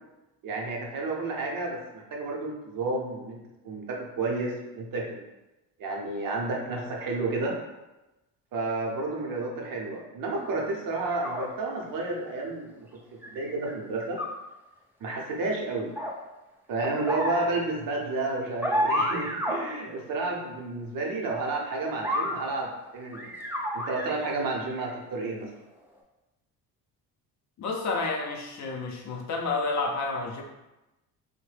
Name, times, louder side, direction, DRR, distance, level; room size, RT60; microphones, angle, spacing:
voice 1, 0.4-3.4 3.6-5.3 5.8-7.6 8.5-12.9 13.3-14.2 15.0-15.9 16.7-23.3 23.7-25.5, right 3 dB, 60° right, -1 dB, 0.7 m, -31 dB
sound 1, 11.1-11.5 13.2-13.7 14.0-14.2 16.0-16.1 16.8-17.4 18.6-19.6 22.0-22.3 23.1-24.2 24.7-24.9, equal, 5° right, 0.4 m, -29 dB
voice 2, 27.6-30.4, left 3 dB, 45° left, 1 dB, 0.6 m, -30 dB
2.7 x 2.1 x 3.2 m, 1.0 s
cardioid pair, 95°, 38 cm